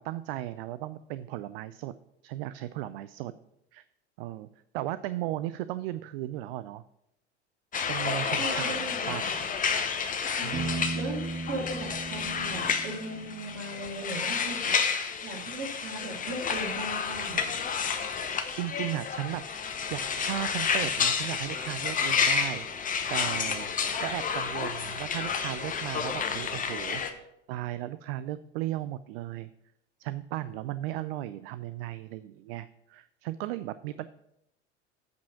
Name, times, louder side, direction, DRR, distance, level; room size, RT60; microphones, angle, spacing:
voice 1, 0.0-1.9 2.2-3.3 3.7-3.8 4.2-4.5 4.7-6.8 7.9-9.4 10.4-10.9 18.6-19.4 19.9-23.7 24.0-29.5 30.0-34.0, right 14 dB, 60° right, 15 dB, 0.4 m, -36 dB
sound 1, 7.7-27.1, left 6 dB, 25° left, 0.9 m, -30 dB
voice 2, 8.4-9.2 10.9-14.7 15.2-17.4, right 1 dB, 40° right, -1 dB, 3.0 m, -37 dB
Piano, 10.5-14.2, right 3 dB, 15° right, 0.6 m, -37 dB
8.2 x 5.2 x 5.8 m, 0.78 s
figure-of-eight pair, 75°, 34 cm